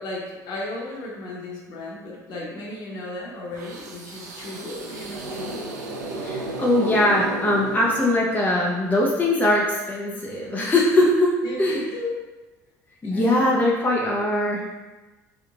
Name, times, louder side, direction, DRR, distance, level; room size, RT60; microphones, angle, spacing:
voice 1, 0.0-5.7 11.4-12.2 13.1-13.5, left 2 dB, 55° left, -4 dB, 1.0 m, -35 dB
sound 1, 3.5-8.6, right 2 dB, 85° right, 0.5 m, -33 dB
voice 2, 6.2-11.3 11.6-11.8 13.0-14.8, left 1 dB, 20° left, -3 dB, 0.7 m, -21 dB
3.4 x 3.0 x 2.5 m, 1.2 s
hypercardioid pair, 65°, 9 cm